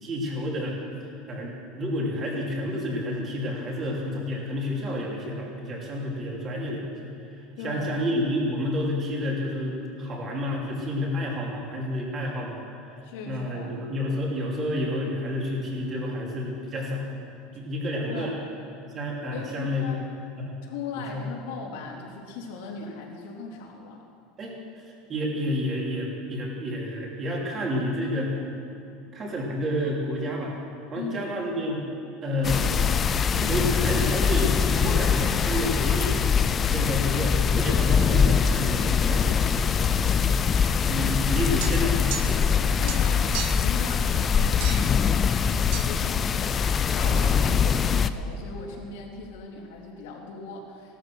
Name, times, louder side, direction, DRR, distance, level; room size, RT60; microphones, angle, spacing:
voice 1, 0.0-0.8 1.3-12.6 13.3-17.1 17.5-18.3 18.9-19.8 20.4-20.6 21.0-21.3 24.4-24.5 24.8-28.3 29.1-30.6 30.9-31.8 32.2-32.9 33.3-36.2 36.7-40.2 40.9-42.6 47.0-47.4, left 1 dB, 25° right, -2 dB, 2.8 m, -30 dB
voice 2, 7.6-7.9 13.0-13.7 18.1-18.3 19.3-20.0 20.6-24.0 30.9-31.4 41.3-41.7 42.8-51.0, left 4 dB, 70° left, -1 dB, 3.2 m, -38 dB
sound 1, 32.4-48.1, left 7 dB, 20° left, 0.4 m, -23 dB
sound 2, 41.6-42.6 42.8-43.7 44.6-45.0 45.7-45.9, right 11 dB, 45° right, 0.8 m, -36 dB
16.5 x 13.0 x 6.3 m, 2.8 s
supercardioid pair, 170°, 0 cm